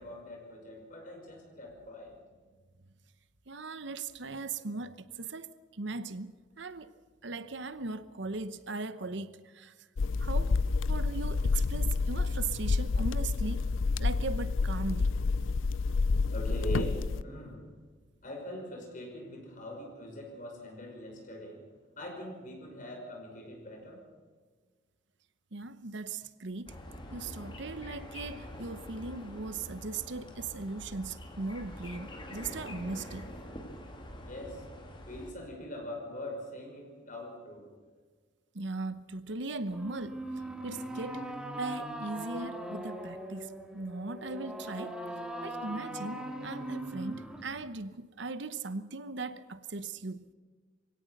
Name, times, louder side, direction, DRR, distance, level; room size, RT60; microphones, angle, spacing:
voice 1, 0.0-2.1 16.3-17.7 18.2-21.6 22.0-24.0 34.3-34.6 35.1-37.7, equal, 40° left, 2 dB, 5.7 m, -42 dB
voice 2, 3.5-6.9 7.2-9.7 10.2-10.5 10.9-13.7 14.0-15.1 15.4-15.5 25.5-26.8 27.1-33.3 38.5-40.2 40.6-41.2 41.6-45.0 45.4-50.2, right 3 dB, 65° right, 13 dB, 0.9 m, -38 dB
sound 1, 10.0-17.2, left 4 dB, 80° left, 0.5 m, -29 dB
sound 2, 26.7-35.3, left 1 dB, 25° left, 2.6 m, -45 dB
sound 3, 39.7-47.7, right 1 dB, 5° right, 2.3 m, -40 dB
23.0 x 17.0 x 6.5 m, 1.4 s
head